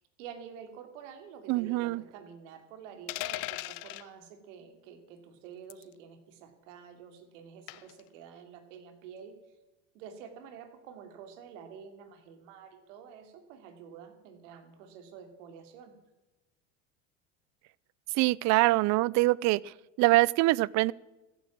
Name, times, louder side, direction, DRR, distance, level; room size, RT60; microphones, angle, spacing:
voice 1, 0.0-9.3 9.9-15.9, right 7 dB, 75° right, 2.9 m, -49 dB
voice 2, 1.5-2.0 18.2-20.9, right 20 dB, 50° right, 0.5 m, -24 dB
sound 1, 3.1-4.1 5.7-5.9 7.7-8.0, left 20 dB, 60° left, 0.7 m, -37 dB
14.5 x 11.0 x 7.3 m
supercardioid pair, 105°, 38 cm